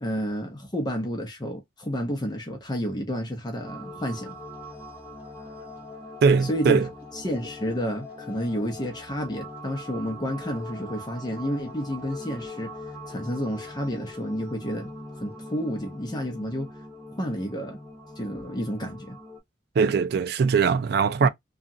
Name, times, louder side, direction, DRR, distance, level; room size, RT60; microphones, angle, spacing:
voice 1, 0.0-4.4 6.5-6.8 7.1-12.7 13.1-14.9 15.2-16.7 17.2-17.8 18.2-19.2 21.2-21.3, equal, 25° left, 0.6 m, -30 dB
sound 1, 3.6-19.4, left 1 dB, 10° right, 1.2 m, -41 dB
voice 2, 6.2-6.9 19.8-21.3, right 5 dB, 55° right, 0.3 m, -21 dB
2.9 x 2.4 x 2.6 m
head